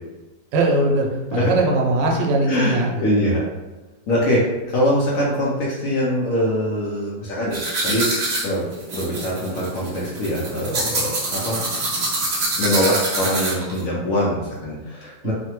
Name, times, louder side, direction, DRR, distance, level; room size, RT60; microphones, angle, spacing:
voice 1, 0.5-3.4 15.2-15.3, right 2 dB, 90° right, 0 dB, 1.3 m, -21 dB
voice 2, 2.5-3.4 4.1-4.4 4.7-8.1 8.4-8.6 8.9-11.6 12.6-15.3, equal, 65° left, -5 dB, 0.8 m, -23 dB
sound 1, 7.5-13.8, right 2 dB, 55° right, 0.7 m, -25 dB
3.1 x 2.1 x 2.9 m, 1.1 s
omnidirectional pair, 1.9 m